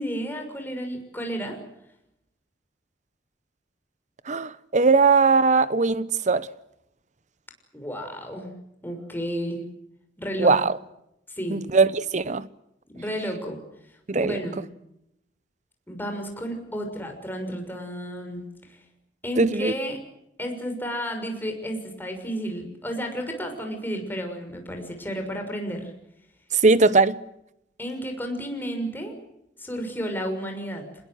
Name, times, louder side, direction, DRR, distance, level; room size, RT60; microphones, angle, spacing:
voice 1, 0.0-1.6 7.7-8.5 8.8-9.6 10.2-10.5 11.3-11.6 12.9-13.6 14.1-14.6 15.9-18.8 19.2-20.0 20.4-25.9 27.8-29.1 29.6-30.8, equal, 10° left, 6.3 m, -32 dB
voice 2, 4.3-6.5 10.4-10.7 11.5-12.5 14.1-14.4 19.4-19.7 26.6-27.2, right 4 dB, 45° right, 0.9 m, -20 dB
26.5 x 21.5 x 8.0 m
head